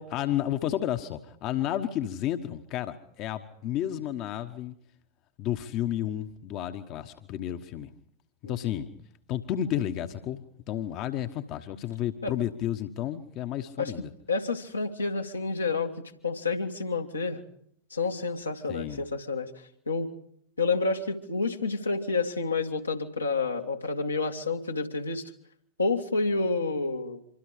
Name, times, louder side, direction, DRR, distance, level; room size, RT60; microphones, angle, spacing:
voice 1, 0.0-4.7 5.4-7.9 8.4-8.9 9.3-14.1 18.7-19.0, left 11 dB, 40° left, 8 dB, 1.3 m, -32 dB
voice 2, 14.3-15.9 16.2-17.4 17.9-19.5 19.9-20.1 20.6-25.2 25.8-27.2, left 3 dB, 80° left, 2 dB, 2.0 m, -29 dB
25.5 x 24.5 x 5.0 m, 0.68 s
figure-of-eight pair, 90°, 0 cm